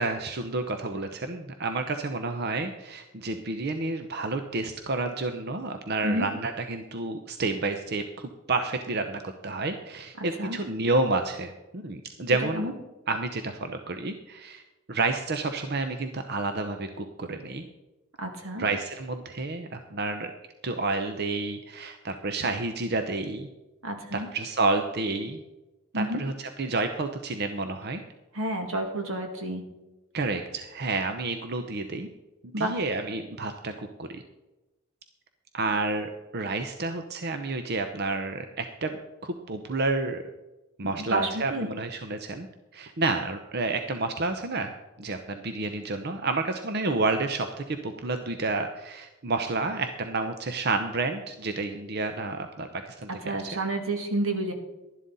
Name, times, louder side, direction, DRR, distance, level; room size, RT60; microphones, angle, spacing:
voice 1, 0.0-12.7 13.1-14.6 14.9-17.7 18.6-20.3 20.6-23.5 24.1-25.4 25.9-28.0 30.1-32.1 32.4-34.2 35.5-40.2 40.8-42.5 42.7-44.7 45.0-53.6, right 3 dB, 50° right, 7 dB, 0.8 m, -30 dB
voice 2, 10.2-10.6 12.5-12.7 18.2-18.7 23.8-24.3 25.9-26.2 28.3-29.6 32.5-32.7 41.0-41.7 53.2-54.5, right 1 dB, 85° right, 4 dB, 2.2 m, -30 dB
12.0 x 11.5 x 4.1 m, 1.0 s
head